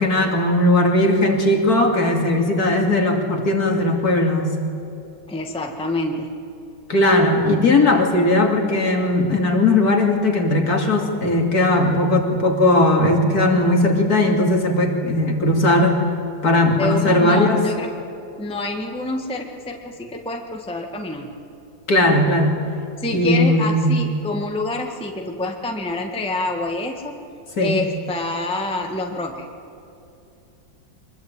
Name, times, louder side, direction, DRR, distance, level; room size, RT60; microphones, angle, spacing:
voice 1, 0.0-4.5 6.9-16.0 16.4-17.6 21.9-22.6 23.1-24.0 27.6-27.8, left 1 dB, 45° left, 2 dB, 3.0 m, -18 dB
voice 2, 5.3-6.3 16.8-17.9 18.4-21.3 23.0-27.3 27.6-29.5, left 2 dB, 5° left, 3 dB, 1.4 m, -27 dB
24.0 x 21.5 x 8.9 m, 2.7 s
omnidirectional pair, 2.2 m